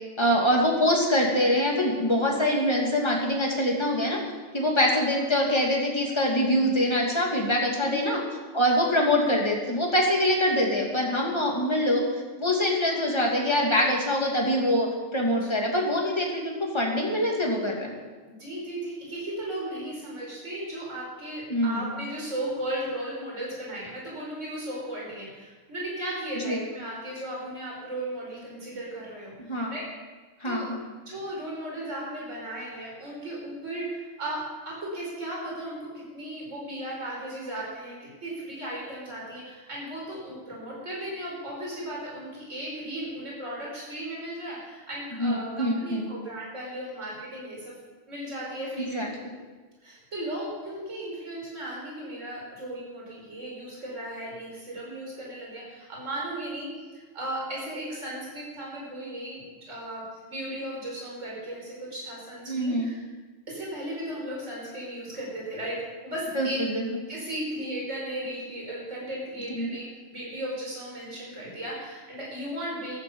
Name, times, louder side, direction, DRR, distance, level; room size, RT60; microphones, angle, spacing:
voice 1, 0.2-4.2 4.5-8.2 8.5-12.0 12.4-14.9 15.1-17.9 21.5-21.9 26.4-26.6 29.5-29.7 30.4-30.8 45.2-46.0 48.9-49.3 62.5-62.9 66.3-67.0 69.6-69.7, left 1 dB, 20° left, -2 dB, 2.7 m, -24 dB
voice 2, 7.8-8.2 15.3-15.5 18.2-29.8 30.4-30.7 31.1-47.7 48.1-49.0 49.8-56.7 56.9-63.0 63.5-65.8 66.0-66.6 67.1-73.0, right 1 dB, 60° right, -4 dB, 5.1 m, -36 dB
14.5 x 13.0 x 5.6 m, 1.3 s
omnidirectional pair, 1.4 m